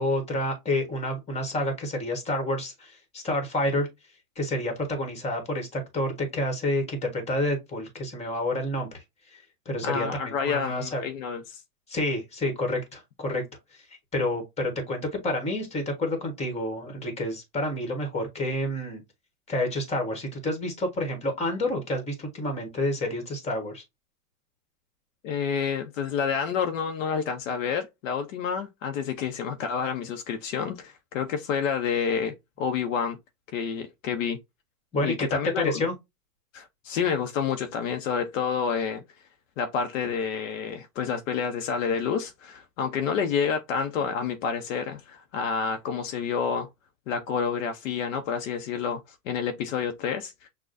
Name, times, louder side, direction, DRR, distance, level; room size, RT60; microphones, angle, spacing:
voice 1, 0.0-3.9 4.4-9.0 9.3-11.0 11.9-13.4 14.1-19.0 19.5-23.8 34.9-35.9, left 1 dB, 15° left, 1.3 m, -29 dB
voice 2, 9.8-11.6 25.2-33.2 33.5-34.4 35.0-35.8 36.5-39.0 39.6-46.7 47.1-50.5, left 6 dB, 55° left, 0.8 m, -29 dB
6.3 x 2.3 x 2.5 m
hypercardioid pair, 135°, 46 cm